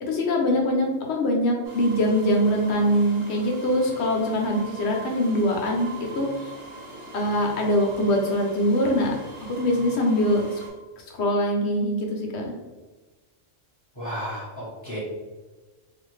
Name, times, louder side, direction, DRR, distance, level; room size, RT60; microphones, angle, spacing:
voice 1, 0.0-6.5 7.1-9.1 9.4-10.5 11.0-12.5, equal, 65° left, 0 dB, 0.8 m, -23 dB
sound 1, 1.6-10.7, right 2 dB, 85° right, 1.1 m, -42 dB
voice 2, 14.0-15.0, equal, 15° left, -10 dB, 0.9 m, -33 dB
2.5 x 2.4 x 3.1 m, 1.3 s
omnidirectional pair, 1.3 m